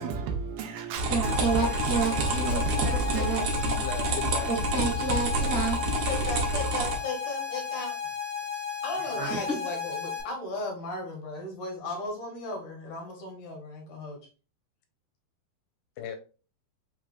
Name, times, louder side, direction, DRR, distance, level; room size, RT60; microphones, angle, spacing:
voice 1, 0.0-3.4, right 5 dB, 85° right, 2.6 m, -33 dB
sound 1, 0.9-7.0, right 1 dB, 65° right, 2.2 m, -28 dB
voice 2, 1.1-2.6 2.9-3.9 4.4-5.9 9.2-9.4, right 3 dB, 45° right, 1.7 m, -30 dB
sound 2, 1.2-10.2, left 7 dB, 25° right, 1.7 m, -34 dB
voice 3, 3.8-4.5 16.0-16.2, left 9 dB, 85° left, 2.5 m, -36 dB
voice 4, 6.1-8.0 8.8-14.2, left 2 dB, 65° left, 2.6 m, -36 dB
5.9 x 3.4 x 2.5 m
omnidirectional pair, 4.2 m